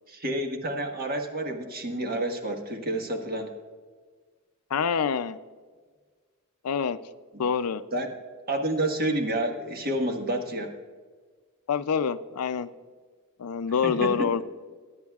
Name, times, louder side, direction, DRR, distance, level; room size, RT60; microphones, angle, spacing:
voice 1, 0.1-3.5 7.9-8.1 8.5-10.7 13.8-14.4, right 1 dB, 45° right, 4 dB, 1.4 m, -29 dB
voice 2, 4.7-5.4 6.6-7.0 7.4-7.8 11.7-12.7 13.4-14.4, left 6 dB, 85° left, 12 dB, 0.5 m, -26 dB
22.5 x 10.0 x 2.4 m, 1.5 s
head